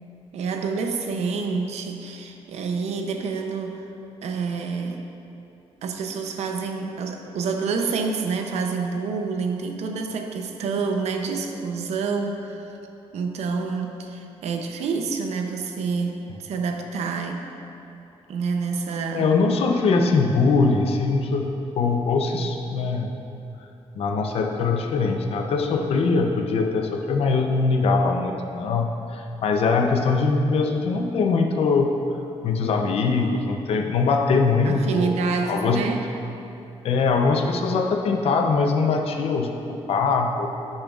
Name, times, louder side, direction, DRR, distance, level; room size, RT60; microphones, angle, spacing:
voice 1, 0.3-3.8 4.2-5.0 5.8-12.8 13.1-17.4 18.3-19.3 34.7-36.1, right 4 dB, 90° right, 4 dB, 0.6 m, -28 dB
voice 2, 19.1-23.4 24.0-31.9 32.4-35.1 35.5-35.9 36.8-40.5, left 4 dB, 65° left, 4 dB, 0.6 m, -22 dB
10.0 x 6.3 x 2.4 m, 2.9 s
wide cardioid pair, 155°, 11 cm